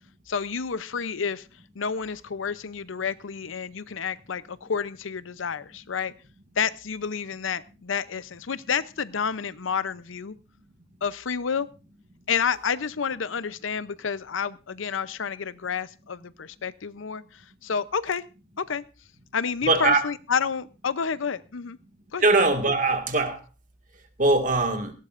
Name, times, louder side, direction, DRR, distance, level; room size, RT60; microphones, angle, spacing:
voice 1, 0.3-1.5 1.7-6.1 6.6-10.3 11.0-11.7 12.3-18.2 18.6-18.8 19.3-21.8 22.1-22.2, left 6 dB, 80° left, 16 dB, 0.7 m, -29 dB
voice 2, 19.6-20.0 22.2-23.4 24.2-24.9, right 2 dB, 40° right, 5 dB, 1.9 m, -21 dB
18.0 x 17.0 x 2.5 m, 0.32 s
head